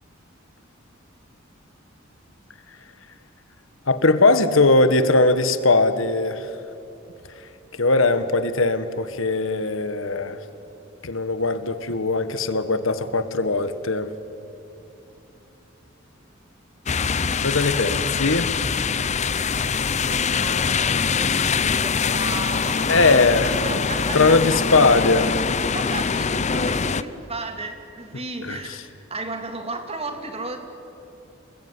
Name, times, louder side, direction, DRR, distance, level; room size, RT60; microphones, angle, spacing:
voice 1, 3.9-6.5 7.7-10.4 11.0-14.1 17.4-18.5 22.9-23.6 24.1-25.4 28.4-28.8, left 3 dB, 70° left, 11 dB, 1.5 m, -20 dB
sound 1, 16.9-27.0, left 5 dB, 35° left, 0.7 m, -23 dB
voice 2, 20.0-24.6 25.2-25.3 25.6-28.8 29.1-30.6, right 2 dB, 30° right, 6 dB, 2.7 m, -34 dB
28.0 x 20.5 x 9.7 m, 2.9 s
head